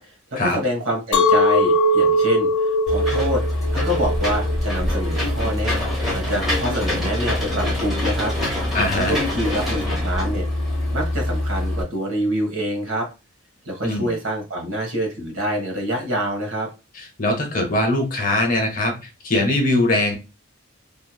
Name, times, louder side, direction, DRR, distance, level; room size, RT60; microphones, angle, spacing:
voice 1, 0.0-3.4 3.7-5.8 6.0-8.3 8.9-10.5 10.9-13.1 13.6-16.7, equal, 70° right, 3 dB, 1.1 m, -26 dB
Chink clink, 1.1-6.3, left 1 dB, 75° left, 0.6 m, -21 dB
Human voice, 1.3-1.4 2.4-2.5 3.1-3.3 4.3-4.4 4.7-6.1 6.3-9.9 10.3-10.4 11.2-11.3, left 1 dB, 30° right, 1.5 m, -41 dB
Engine / Mechanisms, 2.9-11.8, left 1 dB, ahead, 0.9 m, -24 dB
voice 2, 8.7-9.1 13.8-14.1 17.0-20.2, left 1 dB, 40° left, 4 dB, 0.8 m, -21 dB
2.9 x 2.7 x 2.2 m, 0.29 s
head